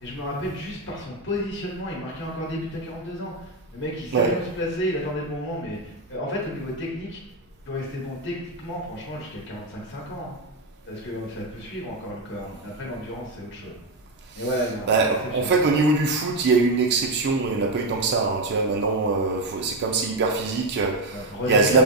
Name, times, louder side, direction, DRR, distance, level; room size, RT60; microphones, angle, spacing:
voice 1, 0.0-7.2 7.6-10.4 10.9-13.8 14.3-15.6 21.1-21.8, left 1 dB, 50° left, -4 dB, 0.9 m, -32 dB
voice 2, 14.9-21.8, right 3 dB, 50° right, 3 dB, 0.4 m, -22 dB
6.4 x 2.7 x 2.6 m, 0.88 s
head